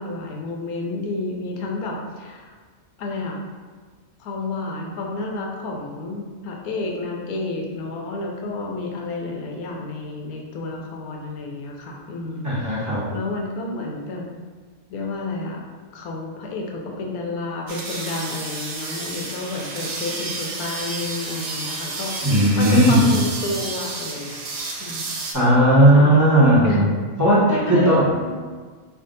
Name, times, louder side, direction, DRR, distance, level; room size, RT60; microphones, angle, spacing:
voice 1, 0.0-2.5 3.0-3.4 4.2-12.8 13.1-14.4 14.9-15.6 15.9-22.3 22.6-24.4 24.8-25.1 25.9-26.3 26.6-26.9 27.5-28.4, left 2 dB, 85° left, 0 dB, 1.1 m, -30 dB
voice 2, 12.4-13.1 22.2-23.1 25.3-26.8 27.2-28.0, equal, 15° right, -10 dB, 0.8 m, -16 dB
sound 1, 17.7-25.3, right 3 dB, 70° right, 0.5 m, -31 dB
3.6 x 2.4 x 3.8 m, 1.5 s
omnidirectional pair, 1.5 m